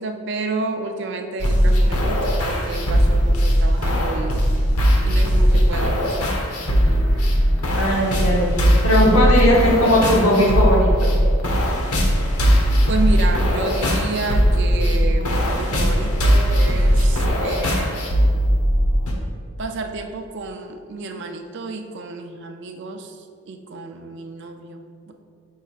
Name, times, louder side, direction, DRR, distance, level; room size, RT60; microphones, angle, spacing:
voice 1, 0.0-4.4 5.0-6.2 12.9-18.1 19.6-25.1, right 3 dB, 50° right, 5 dB, 0.4 m, -30 dB
sound 1, 1.4-19.1, equal, 85° left, 1.0 m, -19 dB
voice 2, 7.7-11.2, equal, 65° left, -3 dB, 1.4 m, -18 dB
9.0 x 5.5 x 2.4 m, 2.3 s
head